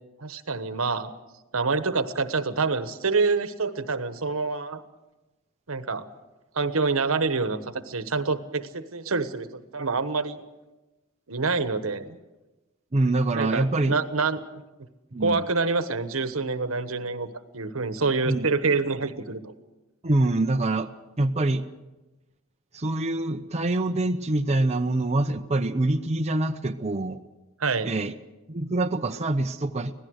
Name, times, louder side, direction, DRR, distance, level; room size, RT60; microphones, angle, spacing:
voice 1, 0.2-1.1 1.5-4.8 5.7-6.1 6.5-10.4 11.3-12.2 13.3-14.4 15.2-17.3 17.5-19.5 27.6-27.9, right 4 dB, 85° right, 11 dB, 1.3 m, -26 dB
voice 2, 12.9-14.0 15.1-15.4 18.3-18.5 20.0-20.9 21.2-21.7 22.7-27.2 27.8-28.1 28.5-29.9, right 2 dB, 30° right, 5 dB, 0.7 m, -25 dB
25.0 x 17.0 x 6.5 m, 1.1 s
head